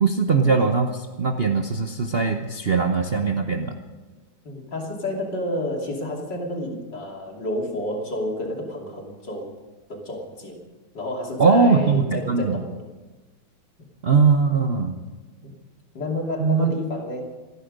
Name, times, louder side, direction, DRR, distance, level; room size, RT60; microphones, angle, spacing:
voice 1, 0.0-3.8 11.4-12.6 14.0-15.0 16.4-16.7, right 5 dB, 45° right, 4 dB, 0.8 m, -20 dB
voice 2, 4.5-9.5 9.9-10.6 10.9-12.7 13.8-13.9 15.4-15.5 15.9-17.2, left 1 dB, 55° left, 0 dB, 3.5 m, -30 dB
28.0 x 9.9 x 5.3 m, 1.3 s
omnidirectional pair, 2.2 m